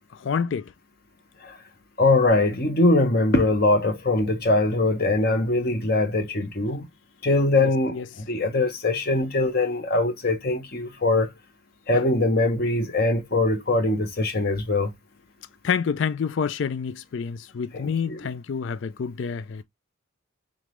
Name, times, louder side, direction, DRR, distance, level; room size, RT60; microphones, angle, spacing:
voice 1, 0.2-0.7 7.9-8.0 11.9-12.0 15.6-19.6, left 6 dB, 60° left, 0.4 m, -28 dB
voice 2, 2.0-6.9 7.2-11.3 11.9-14.9 17.7-18.3, left 2 dB, 45° left, 0.9 m, -22 dB
3.8 x 3.6 x 3.0 m
head